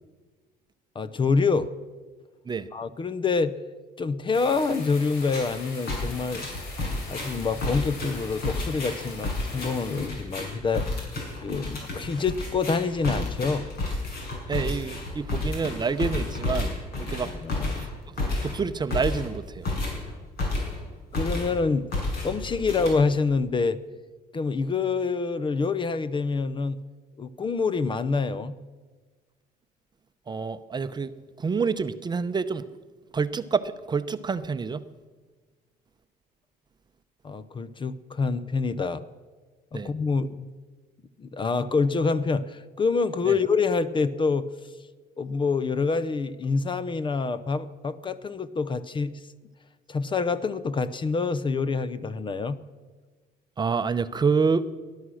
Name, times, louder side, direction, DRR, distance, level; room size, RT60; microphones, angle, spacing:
voice 1, 0.9-1.7 2.7-3.5 4.0-6.5 7.1-10.9 11.4-13.7 17.4-17.9 21.1-21.9 22.2-23.8 24.3-26.8 27.2-28.5 37.2-39.0 39.7-40.5 41.2-44.5 45.2-49.2 49.9-52.6, left 4 dB, 30° left, 15 dB, 0.6 m, -26 dB
sound 1, 4.3-10.1, left 3 dB, 90° left, 3.9 m, -42 dB
sound 2, 5.2-5.5 5.9-20.9 21.1-21.6 21.9-23.3, left 2 dB, 65° left, 6.4 m, -31 dB
voice 2, 14.5-17.3 17.8-18.2 18.4-19.7 30.3-31.1 31.4-32.7 33.1-34.9 39.7-39.9 43.3-43.4 53.6-54.6, right 5 dB, 25° right, 11 dB, 0.7 m, -27 dB
19.0 x 11.5 x 6.3 m, 1.4 s
cardioid pair, 110°, 17 cm